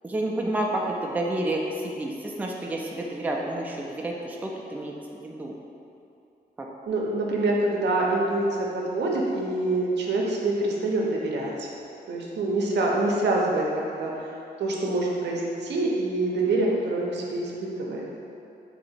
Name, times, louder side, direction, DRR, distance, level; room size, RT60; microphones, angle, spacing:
voice 1, 0.0-5.5, right 1 dB, 10° right, -1 dB, 0.3 m, -30 dB
voice 2, 6.9-11.7 12.1-18.1, right 2 dB, 85° right, -2 dB, 0.6 m, -26 dB
2.9 x 2.8 x 4.1 m, 2.7 s
wide cardioid pair, 105°, 17 cm